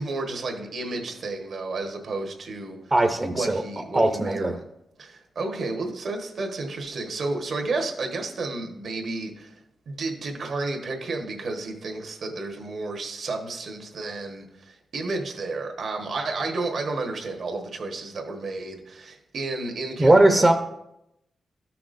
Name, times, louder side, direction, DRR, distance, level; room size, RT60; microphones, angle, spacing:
voice 1, 0.0-2.9 3.3-4.6 5.0-9.5 9.9-20.4, right 3 dB, 70° right, 3 dB, 1.3 m, -31 dB
voice 2, 2.9-3.6 3.9-4.6 20.0-20.5, right 1 dB, 25° right, 5 dB, 0.7 m, -19 dB
13.5 x 5.9 x 2.6 m, 0.85 s
cardioid pair, 70°, 0 cm